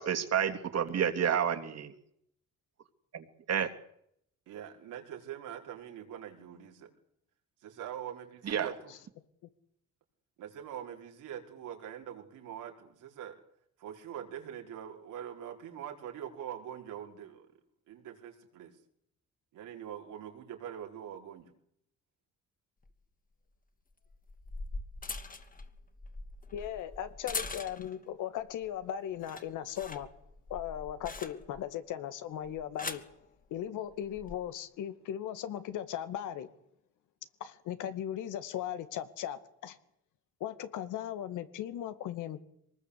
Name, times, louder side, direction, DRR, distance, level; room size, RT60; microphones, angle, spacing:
voice 1, 0.0-1.9 3.1-3.7 8.5-8.7, right 8 dB, 55° right, 6 dB, 3.1 m, -30 dB
voice 2, 4.5-6.9 7.6-9.0 10.4-13.4 13.8-17.5 17.9-18.8 19.5-21.5, right 9 dB, 90° right, 2 dB, 5.1 m, -44 dB
sound 1, 22.8-22.9 24.1-28.1 28.5-28.8 29.1-31.7 32.4-33.1 34.0-34.3, left 3 dB, 30° left, 2.7 m, -42 dB
voice 3, 26.5-30.1 30.5-33.0 33.5-36.5 37.4-39.8 40.4-42.4, left 10 dB, 90° left, 11 dB, 2.2 m, -38 dB
23.5 x 20.0 x 8.4 m, 0.72 s
cardioid pair, 90°, 30 cm